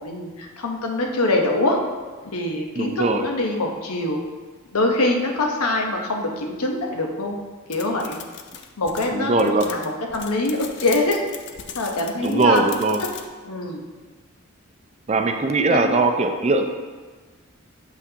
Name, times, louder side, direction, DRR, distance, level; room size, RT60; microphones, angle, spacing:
voice 1, 0.0-1.8 2.3-4.2 4.7-7.4 7.7-8.2 8.8-11.2 11.7-12.6 13.4-13.8 15.7-16.0, left 2 dB, 90° left, 1 dB, 0.9 m, -24 dB
voice 2, 2.8-3.2 9.1-9.7 12.2-13.0 15.1-16.7, right 3 dB, 30° right, 6 dB, 0.4 m, -20 dB
sound 1, 7.7-13.3, left 8 dB, 50° left, 0.4 m, -38 dB
7.2 x 5.7 x 2.8 m, 1.4 s
head